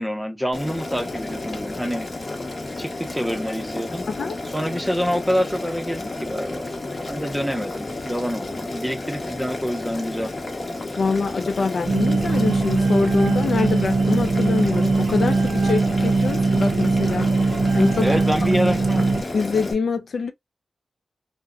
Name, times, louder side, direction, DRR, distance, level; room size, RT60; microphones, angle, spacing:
voice 1, 0.0-2.1 2.8-4.0 4.5-6.7 7.1-10.3 18.0-19.1, equal, ahead, 0.6 m, -26 dB
Boiling, 0.5-19.7, left 2 dB, 40° left, 0.8 m, -32 dB
voice 2, 11.0-17.3 17.8-18.1 19.3-20.3, left 4 dB, 80° left, 0.4 m, -24 dB
sound 1, 11.9-19.2, right 3 dB, 75° right, 0.5 m, -21 dB
2.7 x 2.0 x 2.4 m
wide cardioid pair, 100°, 0 cm